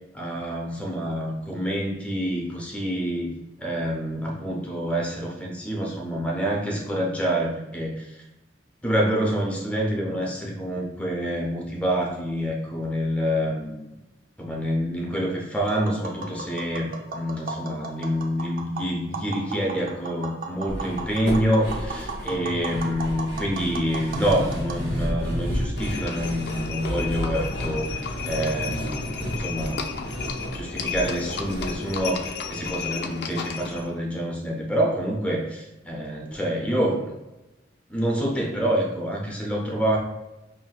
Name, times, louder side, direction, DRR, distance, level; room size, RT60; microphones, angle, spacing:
voice 1, 0.1-3.3 3.6-8.2 8.8-13.9 14.4-30.1 30.5-37.1 37.9-40.0, equal, 5° left, -2 dB, 0.6 m, -27 dB
Tap, 15.6-24.8, right 3 dB, 50° right, 0.4 m, -36 dB
sound 1, 20.7-33.0 33.2-33.3 33.7-33.8, equal, 80° right, 1.2 m, -32 dB
Livestock farm animals working animals, 25.8-33.9, left 5 dB, 60° left, 0.4 m, -33 dB
5.6 x 2.6 x 2.3 m, 1.0 s
head